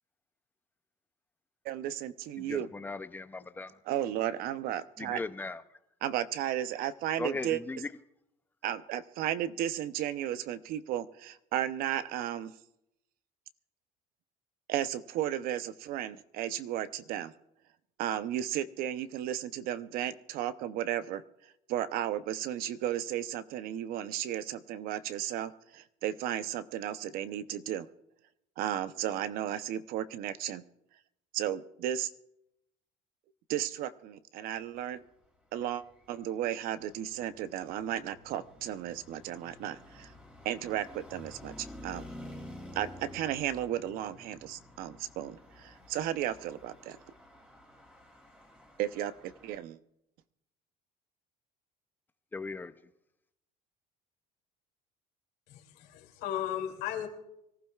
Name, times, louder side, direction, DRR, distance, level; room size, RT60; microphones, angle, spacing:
voice 1, 1.6-2.7 3.9-5.2 6.0-7.6 8.6-12.5 14.7-17.3 18.0-21.2 21.7-27.9 28.6-30.6 31.3-32.1 33.5-35.0 35.5-35.8 36.1-40.1 40.4-42.0 42.7-47.0 48.8-49.8, right 11 dB, 65° right, 13 dB, 0.7 m, -34 dB
voice 2, 2.5-3.3 3.6-3.7 5.0-5.6 7.2-7.8 52.3-52.7, left 3 dB, 10° left, 12 dB, 0.5 m, -37 dB
Traffic noise roadway noise, 35.8-49.5, left 1 dB, 5° right, 2.7 m, -51 dB
voice 3, 55.5-57.1, left 11 dB, 80° left, 2 dB, 2.7 m, -35 dB
25.0 x 15.0 x 2.4 m, 0.84 s
cardioid pair, 140°, 16 cm